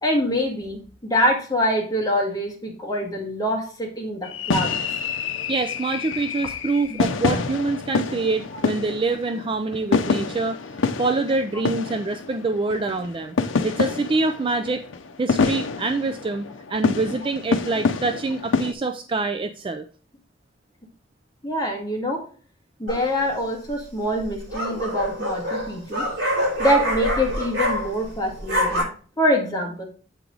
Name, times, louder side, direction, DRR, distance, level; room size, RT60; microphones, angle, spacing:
voice 1, 0.0-4.8 6.9-7.0 8.5-8.6 21.4-22.2 22.8-26.0 26.6-28.9 29.2-29.8, equal, 20° left, 0 dB, 1.7 m, -24 dB
sound 1, 4.2-18.7, left 4 dB, 90° left, 0.6 m, -27 dB
voice 2, 5.5-10.6 11.0-13.3 13.6-14.9 15.2-19.9, right 3 dB, 25° right, 8 dB, 0.4 m, -25 dB
sound 2, 22.9-23.3 24.2-28.1 28.4-28.8, equal, 60° right, 3.9 m, -25 dB
8.1 x 4.7 x 3.8 m, 0.41 s
head